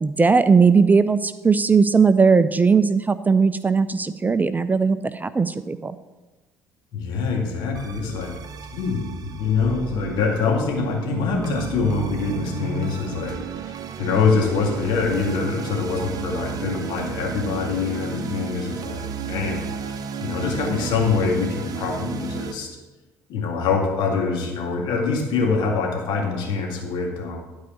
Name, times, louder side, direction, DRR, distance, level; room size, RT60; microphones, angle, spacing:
voice 1, 0.0-6.0, right 5 dB, 20° right, 13 dB, 0.5 m, -18 dB
voice 2, 6.9-8.4 8.7-22.7 23.3-27.4, left 5 dB, 60° left, 0 dB, 2.1 m, -24 dB
sound 1, 7.7-22.5, right 7 dB, 50° right, 0.8 m, -33 dB
11.5 x 4.7 x 6.4 m, 1.1 s
hypercardioid pair, 55°, 8 cm